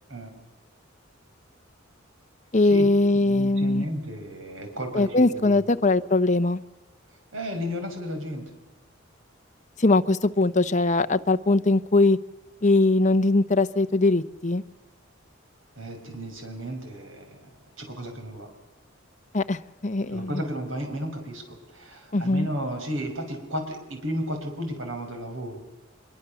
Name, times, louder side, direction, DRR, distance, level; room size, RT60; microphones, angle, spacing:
voice 1, 2.5-3.9 4.9-6.6 9.8-12.2 12.6-14.6 19.3-20.4 22.1-22.5, left 2 dB, 35° left, 10 dB, 0.9 m, -21 dB
voice 2, 3.1-5.6 7.3-8.5 15.8-17.5 17.8-18.5 20.1-25.6, equal, 80° right, 4 dB, 6.0 m, -33 dB
25.0 x 23.0 x 7.1 m, 1.1 s
head